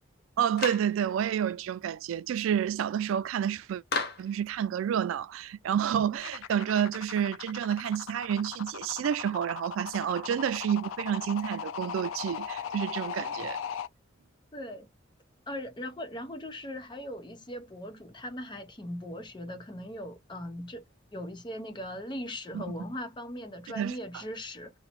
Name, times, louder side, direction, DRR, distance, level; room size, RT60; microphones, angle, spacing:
voice 1, 0.4-3.8 4.2-13.6 22.5-22.6 23.8-24.2, right 9 dB, 85° right, 0.3 m, -29 dB
Clapping, 0.6-0.9 3.9-4.3, left 4 dB, 55° left, 0.8 m, -32 dB
sound 1, 6.2-13.9, left 8 dB, 85° left, 0.4 m, -38 dB
voice 2, 14.5-14.9 15.5-20.8 21.1-24.7, left 1 dB, 25° left, 0.6 m, -39 dB
2.9 x 2.1 x 2.9 m
head